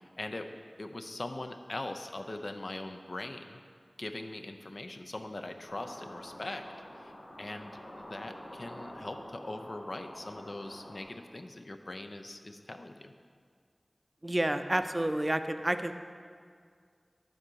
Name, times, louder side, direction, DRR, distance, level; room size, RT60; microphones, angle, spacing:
voice 1, 0.0-3.6 4.0-6.7 7.0-13.1, left 2 dB, 65° left, 6 dB, 0.5 m, -41 dB
sound 1, 5.7-11.0, left 1 dB, 85° left, 1.4 m, -47 dB
voice 2, 14.2-15.9, right 1 dB, 30° right, 9 dB, 0.5 m, -29 dB
10.0 x 4.0 x 6.3 m, 2.1 s
wide cardioid pair, 40°, 0 cm